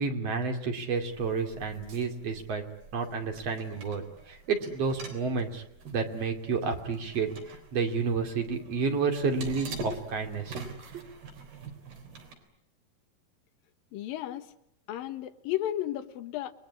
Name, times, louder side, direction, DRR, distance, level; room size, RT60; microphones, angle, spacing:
voice 1, 0.0-2.6 2.9-5.6 5.9-10.6 10.9-11.1, right 4 dB, 45° right, 4 dB, 3.3 m, -30 dB
sound 1, 0.9-12.3, right 3 dB, 85° right, 5.6 m, -45 dB
voice 2, 13.9-14.5 14.9-16.5, left 13 dB, 75° left, 8 dB, 3.0 m, -33 dB
29.0 x 21.0 x 9.7 m, 0.77 s
omnidirectional pair, 4.3 m